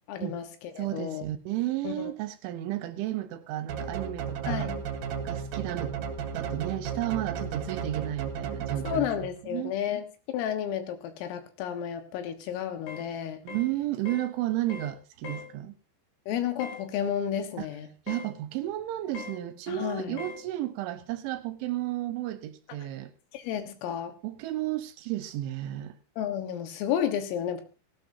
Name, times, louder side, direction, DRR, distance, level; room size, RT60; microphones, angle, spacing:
voice 1, 0.1-0.5 0.8-1.3 1.8-2.1 4.5-4.8 8.8-13.4 16.3-17.9 19.7-20.2 23.3-24.1 26.2-27.6, left 9 dB, 85° left, 4.1 m, -32 dB
voice 2, 0.8-4.7 5.2-6.0 6.3-9.1 9.5-9.8 13.4-15.7 17.6-17.7 18.1-23.1 24.2-26.0, right 14 dB, 75° right, 3.1 m, -33 dB
sound 1, 3.7-9.4, right 6 dB, 60° right, 2.7 m, -34 dB
sound 2, 12.9-13.1 13.5-13.7 14.1-14.3 14.7-14.9 15.2-15.5 16.6-16.8 18.1-18.3 19.1-19.4 20.2-20.4, left 5 dB, 55° left, 3.5 m, -40 dB
18.0 x 16.0 x 2.8 m
omnidirectional pair, 5.9 m